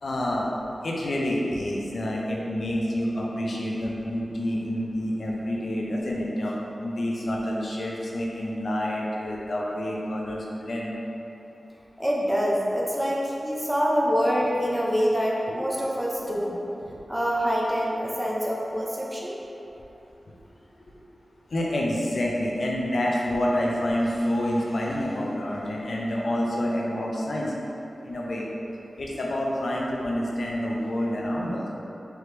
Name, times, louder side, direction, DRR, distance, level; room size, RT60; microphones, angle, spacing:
voice 1, 0.0-0.5 0.8-10.9 15.5-15.6 16.3-16.5 16.9-17.0 20.3-20.4 21.5-27.5 28.0-28.5 29.0-31.7, left 1 dB, 65° left, -3 dB, 0.6 m, -28 dB
voice 2, 12.0-16.6 17.1-19.4, equal, 5° right, -4 dB, 0.7 m, -25 dB
4.5 x 3.1 x 3.3 m, 2.9 s
wide cardioid pair, 95°, 0 cm